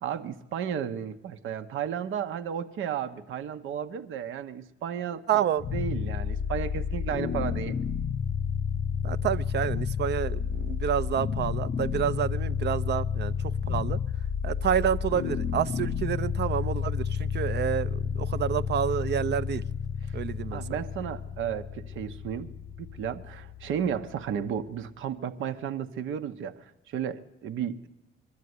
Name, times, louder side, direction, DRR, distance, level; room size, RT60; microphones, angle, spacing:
voice 1, 0.0-5.2 5.7-7.8 20.5-22.5 22.8-27.9, right 8 dB, 80° right, 1.1 m, -33 dB
voice 2, 5.3-5.6 9.0-13.3 13.7-14.0 14.4-19.6 20.1-20.6, right 9 dB, 60° right, 0.7 m, -29 dB
sound 1, 5.6-24.6, left 7 dB, 45° left, 0.6 m, -31 dB
22.0 x 13.0 x 9.6 m
cardioid pair, 90°, 20 cm